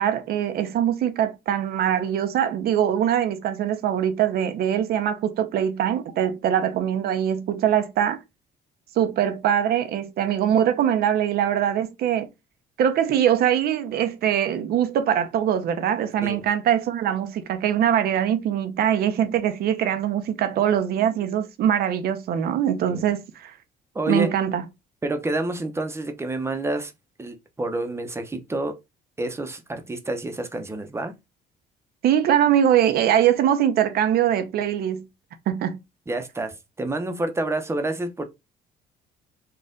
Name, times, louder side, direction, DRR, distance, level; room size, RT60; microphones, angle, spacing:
voice 1, 0.0-8.2 9.0-12.3 12.8-23.5 24.1-24.6 32.0-35.1 35.5-35.8, right 10 dB, 65° right, 0.8 m, -22 dB
voice 2, 23.9-24.3 25.0-26.9 27.2-28.8 29.2-31.1 36.1-38.2, right 2 dB, 15° right, 0.8 m, -28 dB
4.3 x 2.5 x 3.7 m
cardioid pair, 110°, 17 cm